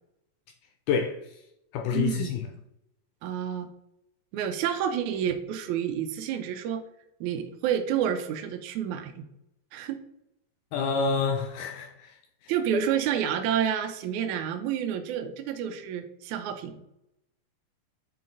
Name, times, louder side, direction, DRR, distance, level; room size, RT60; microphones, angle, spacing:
voice 1, 0.9-1.2 1.7-2.5 10.7-12.2, left 5 dB, 80° left, 2.0 m, -27 dB
voice 2, 1.9-2.3 3.2-3.7 4.3-6.8 7.2-9.3 9.7-10.0 12.5-16.9, right 9 dB, 85° right, 1.7 m, -29 dB
7.5 x 3.8 x 3.8 m
omnidirectional pair, 4.0 m